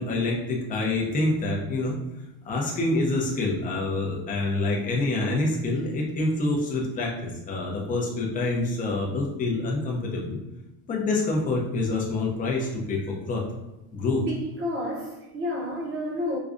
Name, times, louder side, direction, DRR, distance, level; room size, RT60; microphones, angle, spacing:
voice 1, 0.0-2.0 2.4-10.4 10.9-13.5 13.9-14.2, left 2 dB, 20° left, 0.5 m, -26 dB
voice 2, 14.2-16.4, left 1 dB, 30° right, 0.8 m, -30 dB
4.9 x 2.2 x 2.5 m
cardioid pair, 155°, 44 cm